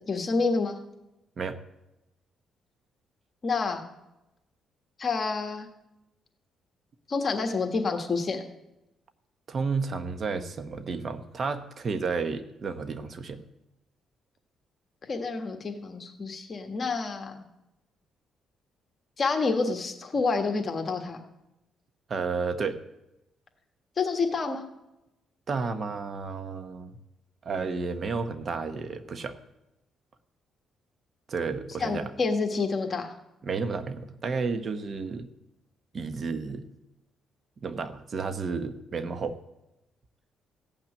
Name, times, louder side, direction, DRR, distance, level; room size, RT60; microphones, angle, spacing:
voice 1, 0.1-0.8 3.4-3.9 5.0-5.7 7.1-8.4 15.1-17.5 19.2-21.2 24.0-24.7 31.8-33.1, left 4 dB, 40° left, 4 dB, 1.5 m, -28 dB
voice 2, 9.5-13.4 22.1-22.8 25.5-27.0 27.4-29.4 31.3-32.1 33.4-35.3 35.9-36.6 37.6-39.4, right 4 dB, 45° right, 11 dB, 1.0 m, -32 dB
15.5 x 6.0 x 9.1 m, 0.93 s
cardioid pair, 90°, 0 cm